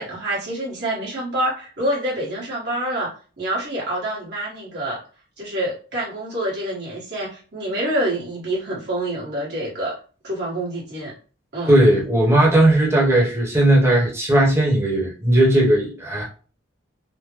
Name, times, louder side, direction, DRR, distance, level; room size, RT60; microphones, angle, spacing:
voice 1, 0.0-3.1 3.4-5.0 5.4-9.9 10.2-11.1 11.5-11.7, right 1 dB, 60° right, 1.3 m, -26 dB
voice 2, 11.7-16.2, right 1 dB, 15° right, 1.0 m, -17 dB
3.6 x 2.1 x 3.0 m
head